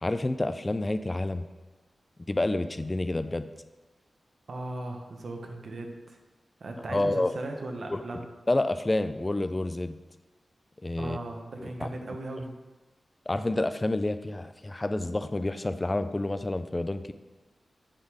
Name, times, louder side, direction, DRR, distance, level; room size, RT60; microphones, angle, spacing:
voice 1, 0.0-1.5 2.3-3.5 6.9-7.3 7.9-8.0 8.5-10.0 10.8-11.2 11.6-11.9 13.3-17.1, left 2 dB, 20° left, 11 dB, 0.3 m, -29 dB
voice 2, 4.5-6.2 6.6-8.3 11.0-12.5, right 2 dB, 60° right, 3 dB, 0.9 m, -37 dB
8.7 x 3.8 x 4.8 m, 1.2 s
wide cardioid pair, 140°, 0 cm